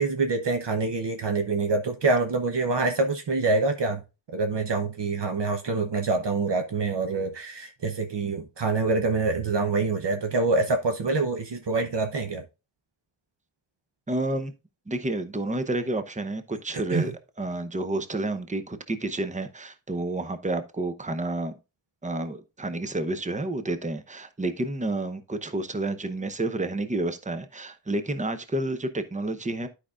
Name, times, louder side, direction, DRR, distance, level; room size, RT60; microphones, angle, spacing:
voice 1, 0.0-4.0 4.3-12.4 16.9-17.1, right 3 dB, 60° right, 0.9 m, -26 dB
voice 2, 14.1-14.5 14.9-21.5 22.0-29.7, right 2 dB, 15° right, 0.7 m, -30 dB
12.0 x 5.1 x 2.4 m
wide cardioid pair, 105°, 47 cm